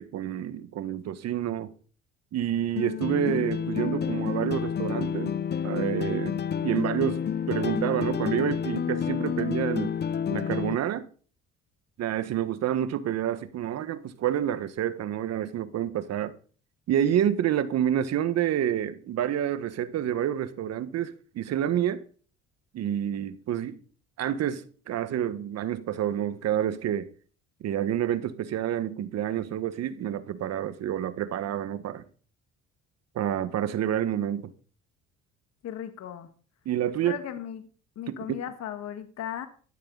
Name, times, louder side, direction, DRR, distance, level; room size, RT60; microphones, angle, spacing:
voice 1, 0.0-1.7 2.3-7.2 7.5-9.9 10.3-11.1 12.0-16.3 16.9-22.0 22.7-23.8 24.2-27.1 27.6-32.0 33.1-34.5 36.6-37.2 38.1-38.4, right 10 dB, 60° right, 1.4 m, -28 dB
sound 1, 2.8-10.8, left 8 dB, 35° left, 0.7 m, -29 dB
voice 2, 35.6-36.3 37.0-37.7 38.0-39.5, left 10 dB, 60° left, 1.7 m, -36 dB
13.5 x 12.5 x 4.0 m
supercardioid pair, 70°, 29 cm